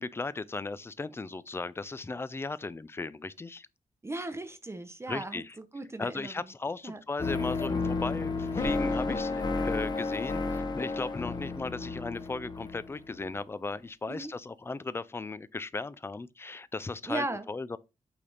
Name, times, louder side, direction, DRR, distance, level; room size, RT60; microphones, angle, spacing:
voice 1, 0.0-3.7 5.1-5.5 6.0-17.8, left 3 dB, 20° left, 0.4 m, -37 dB
voice 2, 4.0-6.4 6.8-7.0 14.1-14.4 17.1-17.5, right 2 dB, 20° right, 0.7 m, -37 dB
sound 1, 7.2-13.3, left 3 dB, 35° left, 1.0 m, -32 dB
8.5 x 3.4 x 4.0 m
wide cardioid pair, 115°, 13 cm